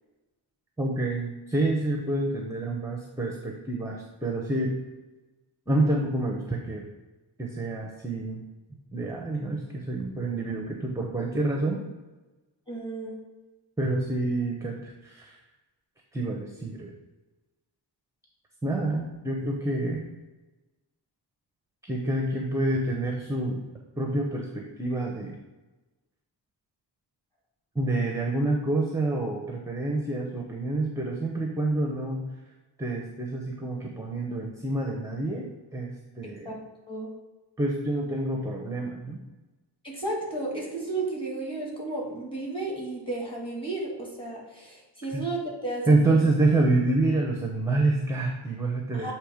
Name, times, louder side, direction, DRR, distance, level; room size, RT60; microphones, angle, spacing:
voice 1, 0.8-4.7 5.7-6.8 7.4-8.4 8.9-11.8 13.8-15.4 16.1-16.9 18.6-20.0 21.8-23.7 24.0-25.4 27.7-32.3 32.8-36.5 37.6-39.2 45.1-45.2 45.9-49.1, right 2 dB, 5° right, 0 dB, 0.7 m, -27 dB
voice 2, 12.7-13.1 36.2-36.5 36.9-37.1 39.8-46.2 48.9-49.1, right 2 dB, 10° left, -3 dB, 2.0 m, -33 dB
7.6 x 3.0 x 5.0 m, 1.1 s
wide cardioid pair, 110°, 45 cm